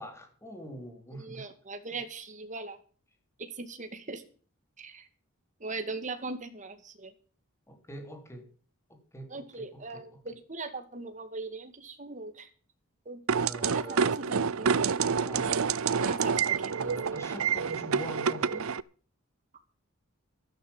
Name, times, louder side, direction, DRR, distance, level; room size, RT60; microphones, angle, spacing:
voice 1, 0.0-1.5 1.9-2.0 7.7-8.5 8.9-10.2 13.3-14.1 15.1-15.7 16.8-18.7, equal, 15° left, 3.6 m, -44 dB
voice 2, 1.2-2.8 3.4-4.2 4.8-5.1 5.6-7.1 9.3-12.5 13.1-14.7 16.0-16.7, right 3 dB, 35° right, 2.1 m, -40 dB
sound 1, 13.3-18.8, right 6 dB, 85° right, 0.6 m, -28 dB
13.0 x 13.0 x 5.5 m
head